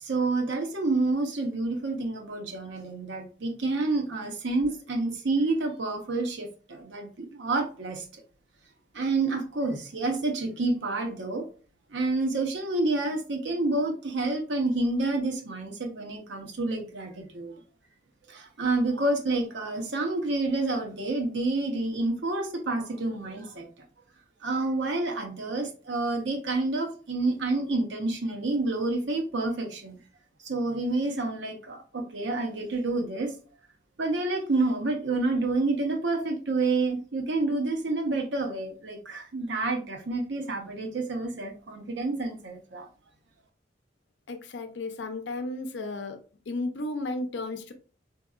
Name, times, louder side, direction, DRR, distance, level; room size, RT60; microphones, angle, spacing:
voice 1, 0.0-8.0 8.9-11.5 11.9-17.5 18.3-23.7 24.4-29.9 30.4-33.3 34.0-42.9, right 2 dB, 85° right, 3 dB, 0.8 m, -28 dB
voice 2, 44.3-46.2 46.5-47.7, left 2 dB, 85° left, 7 dB, 0.6 m, -33 dB
3.7 x 2.8 x 2.3 m, 0.38 s
head